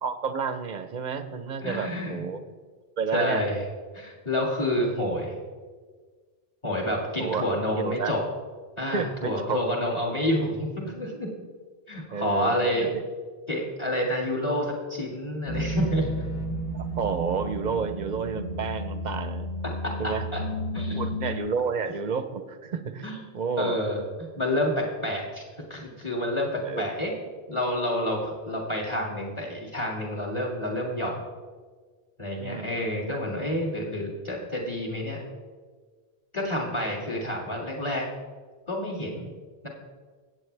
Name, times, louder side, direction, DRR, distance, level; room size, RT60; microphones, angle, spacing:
voice 1, 0.0-2.4 3.0-3.4 7.2-7.4 7.7-8.1 8.9-9.6 12.1-12.9 16.7-19.5 20.0-20.3 20.7-23.1 23.3-23.8 26.7-26.9 32.4-32.8 33.1-33.2 39.1-39.4, right 5 dB, 50° right, 10 dB, 0.7 m, -30 dB
voice 2, 1.6-2.2 3.1-3.6 3.9-5.4 6.6-8.2 8.8-11.3 11.9-12.9 13.5-16.3 19.8-20.4 20.7-21.4 23.0-23.2 23.6-25.4 25.7-27.1 27.5-31.2 32.2-35.2 36.3-38.0 38.7-39.2 39.6-39.7, left 1 dB, 30° left, -2 dB, 2.1 m, -29 dB
sound 1, 15.5-21.4, equal, 70° left, 1.4 m, -32 dB
17.0 x 7.9 x 3.3 m, 1.5 s
omnidirectional pair, 1.0 m